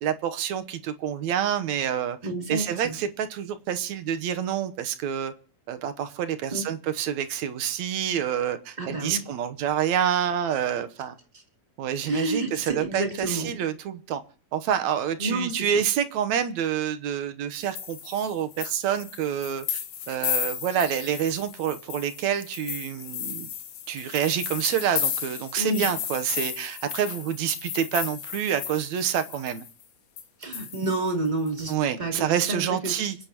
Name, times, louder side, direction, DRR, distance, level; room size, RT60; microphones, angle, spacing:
voice 1, 0.0-2.2 2.5-5.3 5.7-11.2 11.8-14.2 14.5-19.7 20.1-23.5 23.9-29.6 31.7-33.2, right 9 dB, 70° right, 10 dB, 2.2 m, -27 dB
voice 2, 2.2-3.0 6.5-6.8 8.8-9.3 11.3-11.4 12.0-13.6 15.2-15.7 25.6-25.9 30.4-33.1, right 2 dB, 15° right, 2 dB, 2.9 m, -30 dB
sound 1, 17.6-29.8 30.2-30.3 30.5-31.8, left 9 dB, 85° left, 3.2 m, -34 dB
30.0 x 10.0 x 3.0 m, 0.43 s
omnidirectional pair, 3.5 m